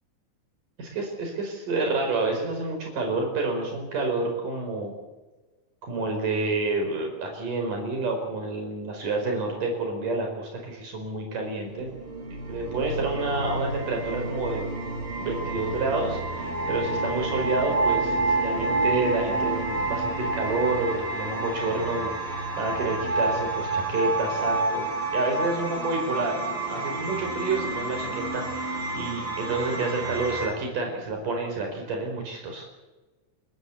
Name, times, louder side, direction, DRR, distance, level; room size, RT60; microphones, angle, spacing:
voice 1, 0.8-4.9 5.8-12.0 12.5-14.7 15.2-26.4 26.7-32.6, right 3 dB, 85° right, 2 dB, 6.0 m, -29 dB
sound 1, 11.3-30.5, right 2 dB, 40° right, 5.2 m, -29 dB
29.5 x 14.5 x 8.2 m, 1.2 s
omnidirectional pair, 3.6 m